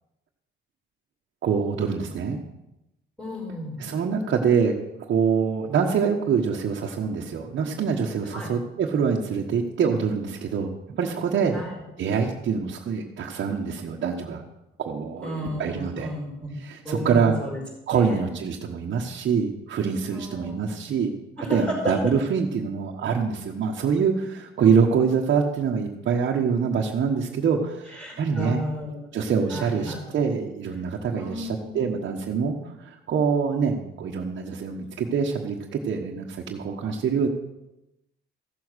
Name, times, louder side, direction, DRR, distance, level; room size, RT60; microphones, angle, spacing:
voice 1, 1.4-2.4 3.8-11.6 12.0-14.4 14.8-16.1 16.6-17.3 17.9-28.6 29.1-37.3, right 6 dB, 65° right, -2 dB, 1.4 m, -25 dB
voice 2, 3.2-3.8 8.3-8.5 11.5-11.7 15.2-16.5 16.8-17.6 18.0-18.2 20.1-20.6 21.4-22.1 27.9-29.1 29.5-30.0 31.1-31.9, equal, 5° left, -3 dB, 5.1 m, -33 dB
15.0 x 7.2 x 6.4 m, 0.93 s
cardioid pair, 90°, 20 cm